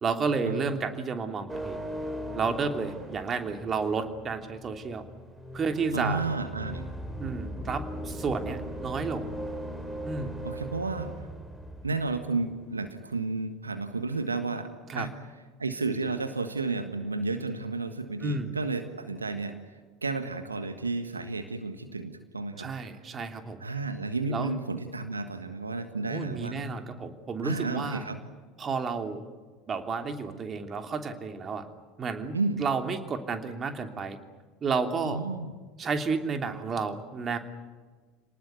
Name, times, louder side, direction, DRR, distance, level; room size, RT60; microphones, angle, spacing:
voice 1, 0.0-1.8 2.3-5.0 5.5-6.2 7.2-9.3 10.0-10.3 14.9-15.1 18.2-18.5 22.6-23.6 24.3-24.5 26.1-28.1 28.6-29.2 29.7-31.7 32.0-34.2 34.6-35.2 35.8-37.4, right 4 dB, 30° right, 6 dB, 3.0 m, -31 dB
sound 1, 1.5-12.9, equal, 10° right, 3.7 m, -39 dB
voice 2, 5.9-6.9 10.4-11.1 11.8-15.1 15.6-19.7 20.0-22.7 23.6-26.6 27.4-28.2 32.3-32.6 35.0-35.5, right 3 dB, 90° right, 9 dB, 1.5 m, -32 dB
28.5 x 19.5 x 9.6 m, 1.4 s
figure-of-eight pair, 70°, 0 cm